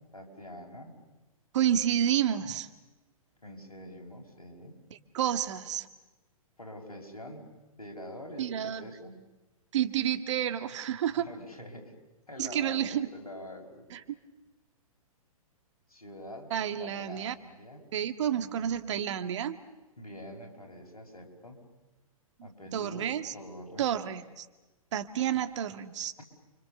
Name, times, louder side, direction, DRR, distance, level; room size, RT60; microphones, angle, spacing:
voice 1, 0.1-0.9 3.4-4.8 6.6-7.5 7.8-9.2 11.1-11.9 12.3-13.9 15.9-16.5 16.8-17.8 20.0-21.6 22.4-23.9, left 1 dB, 90° left, 2 dB, 5.6 m, -45 dB
voice 2, 1.5-2.7 5.1-5.9 8.4-8.8 9.7-11.3 12.4-13.1 13.9-14.0 16.5-17.4 17.9-19.6 22.7-23.3 23.8-24.5 24.9-26.1, right 10 dB, 55° right, 11 dB, 1.9 m, -30 dB
30.0 x 25.0 x 6.8 m, 1.1 s
figure-of-eight pair, 120°, 18 cm